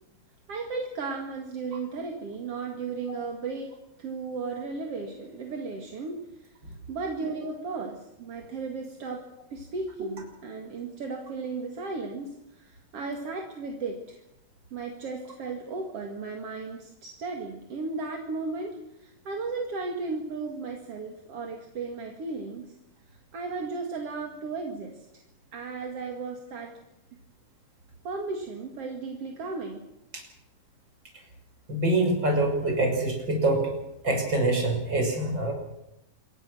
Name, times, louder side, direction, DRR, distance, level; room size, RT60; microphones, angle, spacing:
voice 1, 0.5-3.7 4.0-6.2 6.9-9.2 9.5-14.2 14.7-22.7 23.3-25.2 25.5-26.7 28.0-29.9, right 4 dB, 40° right, 2 dB, 2.8 m, -35 dB
voice 2, 31.7-33.6 34.0-35.5, right 2 dB, 25° right, 2 dB, 6.4 m, -25 dB
27.5 x 22.5 x 6.3 m, 0.83 s
omnidirectional pair, 4.7 m